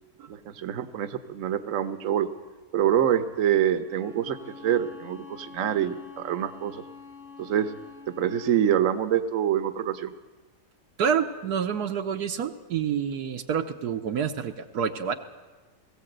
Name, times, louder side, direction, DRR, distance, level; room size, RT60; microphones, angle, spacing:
voice 1, 0.3-2.3 2.7-6.8 7.4-7.7 8.1-10.1, right 10 dB, 55° right, 10 dB, 1.3 m, -26 dB
Bowed string instrument, 3.8-8.7, left 5 dB, 65° left, 8.7 m, -46 dB
voice 2, 11.0-15.1, right 7 dB, 70° right, 7 dB, 1.4 m, -28 dB
20.5 x 16.0 x 8.0 m, 1.2 s
omnidirectional pair, 1.8 m